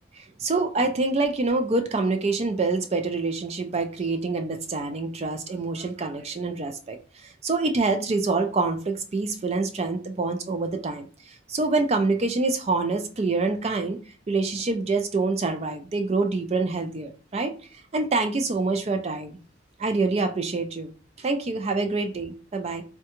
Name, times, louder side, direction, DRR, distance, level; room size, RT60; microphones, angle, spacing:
voice 1, 0.1-7.0 7.2-11.1 11.5-14.0 14.3-17.5 17.9-19.4 19.8-20.9 21.2-22.8, right 3 dB, 35° right, 0.4 m, -26 dB
3.6 x 2.2 x 2.9 m
head